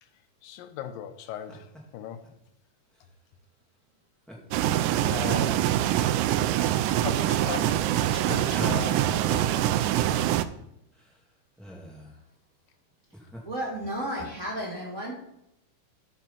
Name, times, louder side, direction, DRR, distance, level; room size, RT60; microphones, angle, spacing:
voice 1, 0.4-2.3 5.1-5.8 7.0-9.8 10.0-10.4, left 9 dB, 90° left, 8 dB, 2.5 m, -38 dB
sound 1, 1.2-1.8 2.2-2.3 2.9-3.1 4.3-4.4 4.7-5.7 6.2-6.7 7.3-7.4 8.5-9.5 9.7-9.8 10.0-10.1 10.6-10.7 10.9-12.2 12.9-13.4, equal, ahead, 1.3 m, -44 dB
sound 2, 4.5-10.4, right 12 dB, 80° right, 1.9 m, -24 dB
voice 2, 13.4-15.2, right 1 dB, 25° right, -3 dB, 2.2 m, -33 dB
9.2 x 6.2 x 5.5 m, 0.80 s
omnidirectional pair, 3.9 m